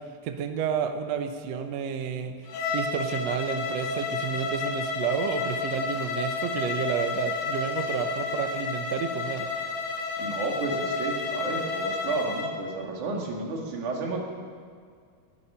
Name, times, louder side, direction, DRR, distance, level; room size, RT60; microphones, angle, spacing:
voice 1, 0.2-2.4 2.7-9.5, right 7 dB, 80° right, 7 dB, 1.5 m, -30 dB
Bowed string instrument, 2.5-12.5, left 4 dB, 75° left, 3.3 m, -31 dB
voice 2, 10.2-14.2, right 3 dB, 60° right, 0 dB, 3.4 m, -31 dB
20.0 x 11.0 x 5.7 m, 2.1 s
omnidirectional pair, 4.2 m